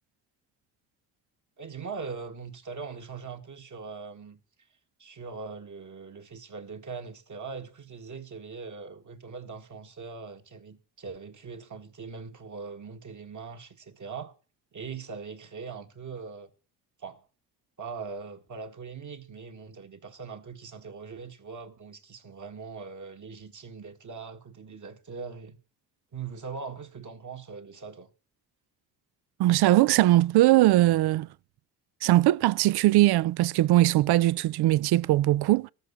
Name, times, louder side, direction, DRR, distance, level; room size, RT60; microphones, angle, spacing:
voice 1, 1.6-4.4 5.0-14.3 14.7-16.5 17.0-17.3 17.8-25.6 26.1-28.1, right 5 dB, 40° right, 1.9 m, -41 dB
voice 2, 29.4-31.3 32.0-35.7, right 16 dB, 60° right, 0.5 m, -21 dB
13.0 x 5.7 x 8.7 m
supercardioid pair, 55°, 45 cm